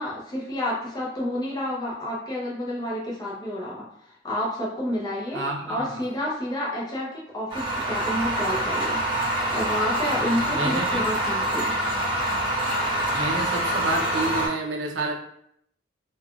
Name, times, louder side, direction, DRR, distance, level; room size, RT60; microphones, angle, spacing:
voice 1, 0.0-9.0 9.5-11.7, left 1 dB, 20° left, -5 dB, 0.6 m, -30 dB
voice 2, 5.3-6.0 10.5-11.0 13.1-15.1, right 2 dB, 75° right, 0 dB, 0.5 m, -29 dB
sound 1, 7.5-14.5, right 1 dB, 25° right, 0.9 m, -25 dB
3.3 x 2.3 x 2.3 m, 0.72 s
head